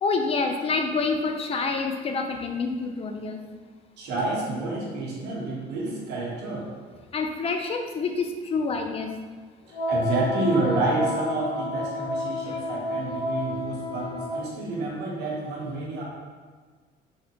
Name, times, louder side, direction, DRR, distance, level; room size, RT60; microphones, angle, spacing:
voice 1, 0.0-3.4 7.1-9.1 12.4-12.7, left 4 dB, 35° left, 4 dB, 0.4 m, -27 dB
voice 2, 4.0-6.7 9.7-16.0, right 2 dB, 80° right, -3 dB, 1.1 m, -29 dB
Wind instrument woodwind instrument, 9.7-14.5, left 2 dB, 85° left, 0.9 m, -30 dB
3.5 x 3.4 x 2.9 m, 1.5 s
cardioid pair, 110°, 17 cm